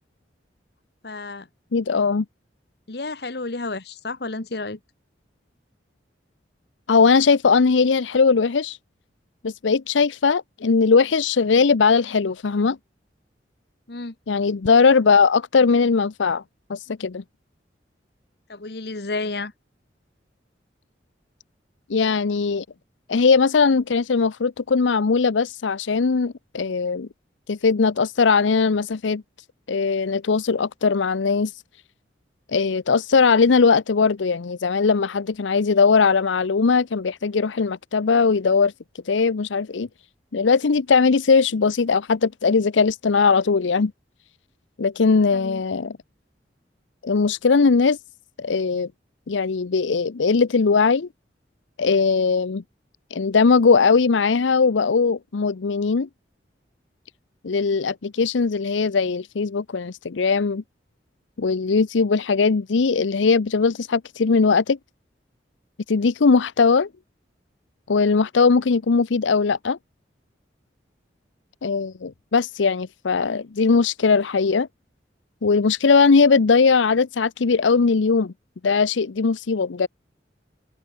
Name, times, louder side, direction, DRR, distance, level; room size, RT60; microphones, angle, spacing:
voice 1, 1.0-1.5 2.9-4.8 13.9-14.1 18.5-19.5 45.2-45.6, left 3 dB, 60° left, 1.2 m, -31 dB
voice 2, 1.7-2.2 6.9-8.8 9.4-12.8 14.3-16.4 16.7-17.2 21.9-22.6 23.1-27.1 27.5-29.2 29.7-31.5 32.5-38.7 39.1-39.9 40.3-43.9 44.8-46.0 47.0-48.0 48.4-48.9 49.3-51.1 51.8-52.6 53.1-56.1 57.4-60.6 61.4-64.8 65.9-66.9 67.9-69.8 71.6-74.7 75.4-78.3 78.6-79.9, left 4 dB, 90° left, 0.6 m, -19 dB
open air
head